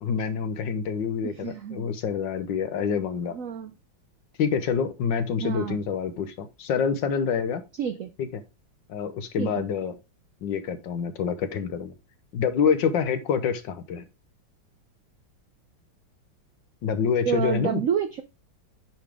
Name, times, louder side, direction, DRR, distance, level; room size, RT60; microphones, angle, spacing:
voice 1, 0.0-3.4 4.4-7.6 8.2-8.4 8.9-9.9 10.4-11.9 12.3-14.0 16.8-17.8, left 6 dB, 70° left, 1.6 m, -27 dB
voice 2, 1.2-1.9 3.3-3.7 5.4-5.8 7.8-8.1 9.4-9.6 17.2-18.2, right 8 dB, 75° right, 0.7 m, -29 dB
8.9 x 5.2 x 3.4 m
omnidirectional pair, 2.2 m